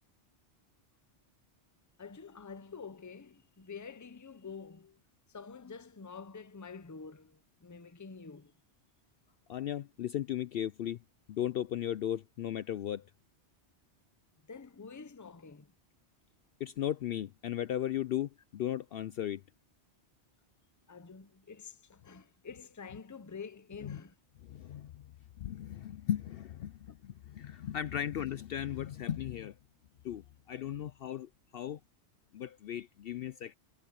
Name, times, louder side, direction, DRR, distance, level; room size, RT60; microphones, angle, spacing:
voice 1, 2.0-5.0 5.3-8.5 14.5-15.7 20.9-24.1 26.9-27.0, left 5 dB, 20° left, 0.7 m, -48 dB
voice 2, 9.5-11.0 11.3-13.1 16.6-19.4 23.8-24.0 24.5-25.1 25.4-29.5 30.0-31.8 32.3-33.5, left 11 dB, 65° left, 0.7 m, -36 dB
omnidirectional pair, 1.2 m